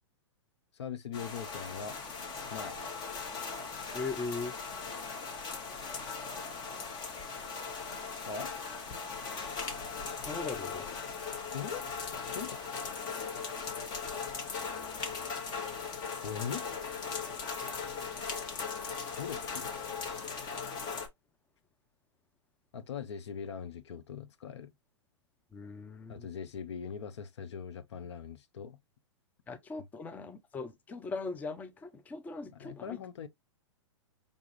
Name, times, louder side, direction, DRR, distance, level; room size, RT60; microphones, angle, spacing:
voice 1, 0.7-2.0 2.5-2.8 8.3-8.5 11.5-11.8 12.2-12.9 16.2-16.7 19.0-19.7 22.7-24.7 26.1-28.8 32.5-33.3, left 7 dB, 70° left, 0.6 m, -41 dB
sound 1, 1.1-21.1, left 5 dB, 30° left, 1.0 m, -39 dB
voice 2, 3.9-4.5 10.2-10.9 25.5-26.3 29.5-33.0, left 3 dB, 10° left, 0.4 m, -39 dB
5.2 x 2.3 x 3.0 m
hypercardioid pair, 115°, 15 cm